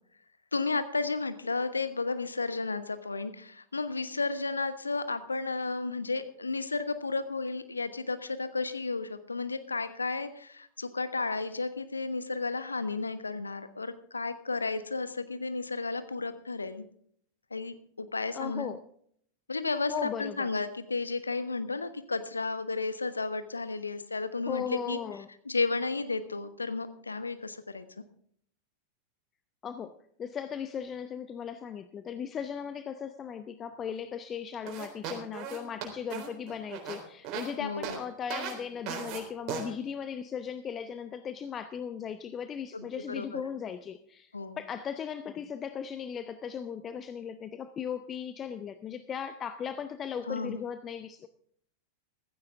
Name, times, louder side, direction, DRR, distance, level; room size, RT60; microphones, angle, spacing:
voice 1, 0.5-16.8 17.5-18.7 19.5-25.0 25.4-27.9 37.6-38.0 42.7-43.4 44.3-44.6 50.3-50.6, left 3 dB, 80° left, 11 dB, 1.1 m, -33 dB
voice 2, 18.3-18.8 19.9-20.5 24.5-25.3 29.6-29.9 30.2-51.3, left 7 dB, 25° left, 11 dB, 0.7 m, -37 dB
sound 1, 34.7-37.5 37.8-38.0 38.3-38.5 38.9-39.2 39.5-39.6, right 7 dB, 40° right, 3.8 m, -37 dB
15.5 x 14.5 x 3.5 m, 0.64 s
figure-of-eight pair, 90°, 0 cm